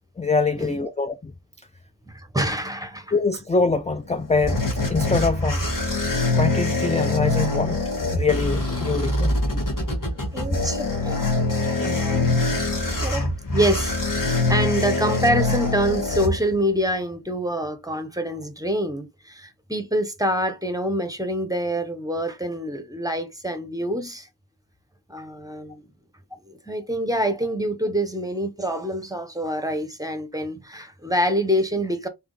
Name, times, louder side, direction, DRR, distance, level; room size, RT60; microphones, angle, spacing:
voice 1, 0.2-1.3 3.1-4.6 4.9-5.7 6.3-7.8 8.1-9.4, left 4 dB, 15° left, 0.4 m, -24 dB
voice 2, 2.1-3.1 9.5-9.6 10.3-11.2 11.8-12.4 13.0-24.3 25.1-25.8 26.4-32.1, equal, 10° right, 0.8 m, -26 dB
sound 1, 3.9-16.9, left 2 dB, 50° left, 1.5 m, -24 dB
3.4 x 2.9 x 3.8 m
wide cardioid pair, 45°, 42 cm